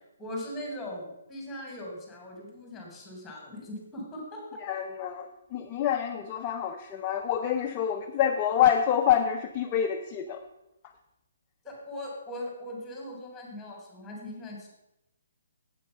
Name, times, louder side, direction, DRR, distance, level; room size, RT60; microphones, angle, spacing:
voice 1, 0.2-4.6 11.6-14.7, left 1 dB, 10° left, -1 dB, 3.7 m, -40 dB
voice 2, 4.6-10.4, left 9 dB, 25° left, 4 dB, 0.6 m, -27 dB
8.4 x 8.2 x 5.5 m, 0.89 s
hypercardioid pair, 145°, 0 cm